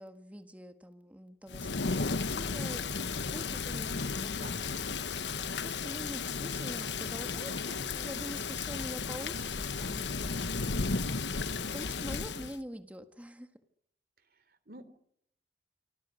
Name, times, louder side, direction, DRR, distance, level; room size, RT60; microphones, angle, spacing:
voice 1, 0.0-4.7 5.3-10.3 11.7-13.5, equal, 10° right, 7 dB, 1.5 m, -45 dB
Thunder / Rain, 1.5-12.6, left 4 dB, 75° left, 1.1 m, -34 dB
voice 2, 14.5-14.9, right 2 dB, 55° right, 13 dB, 3.2 m, -48 dB
27.5 x 25.0 x 6.4 m, 0.72 s
head